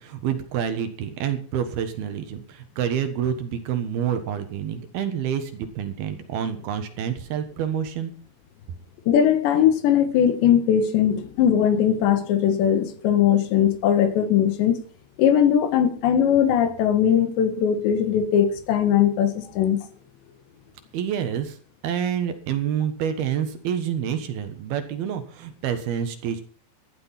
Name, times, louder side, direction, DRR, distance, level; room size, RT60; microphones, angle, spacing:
voice 1, 0.0-8.1 20.9-21.5 21.8-26.4, right 8 dB, 65° right, 3.1 m, -28 dB
voice 2, 9.1-14.8 15.2-19.8, left 9 dB, 80° left, 3.7 m, -20 dB
15.5 x 11.5 x 5.8 m
omnidirectional pair, 5.1 m